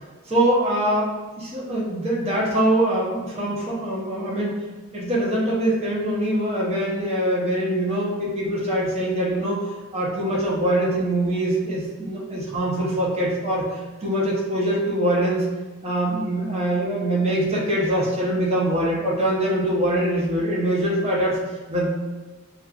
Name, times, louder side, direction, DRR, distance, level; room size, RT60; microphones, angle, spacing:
voice 1, 0.3-1.1 1.4-4.5 4.9-9.6 9.9-15.5 15.8-21.4 21.7-21.9, right 1 dB, 30° right, -5 dB, 0.8 m, -23 dB
6.1 x 2.4 x 2.4 m, 1.2 s
head